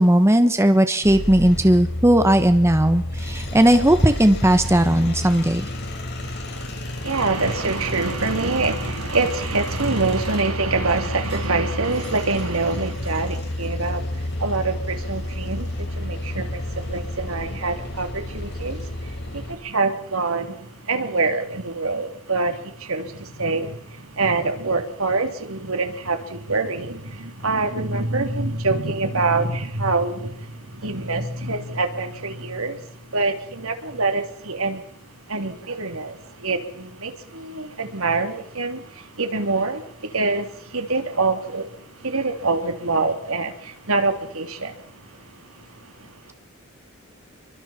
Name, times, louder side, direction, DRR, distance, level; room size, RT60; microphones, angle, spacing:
voice 1, 0.0-5.7, right 1 dB, 15° right, 1.3 m, -17 dB
sound 1, 1.0-19.5, left 1 dB, 50° left, 5.4 m, -30 dB
voice 2, 7.0-14.0 14.4-18.9 19.3-32.8 33.1-34.8 35.3-41.7 42.0-44.7, right 3 dB, 70° right, 3.2 m, -25 dB
28.0 x 24.0 x 4.5 m
head